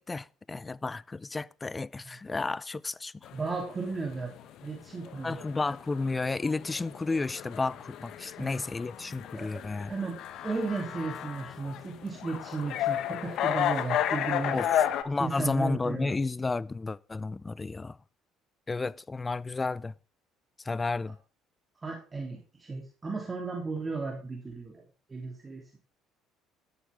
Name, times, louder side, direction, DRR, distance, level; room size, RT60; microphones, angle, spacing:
voice 1, 0.0-3.3 5.2-9.9 14.5-18.0 18.7-19.9 20.6-21.2, left 3 dB, 20° left, 0.5 m, -32 dB
sound 1, 3.2-15.0, left 11 dB, 65° left, 1.3 m, -33 dB
voice 2, 3.3-4.3 4.6-5.4 8.4-8.6 9.3-9.6 9.9-10.2 10.4-14.6 15.2-16.1 21.8-24.8 25.1-25.8, right 4 dB, 25° right, 3.0 m, -35 dB
13.0 x 11.5 x 3.6 m
supercardioid pair, 90°, 0 cm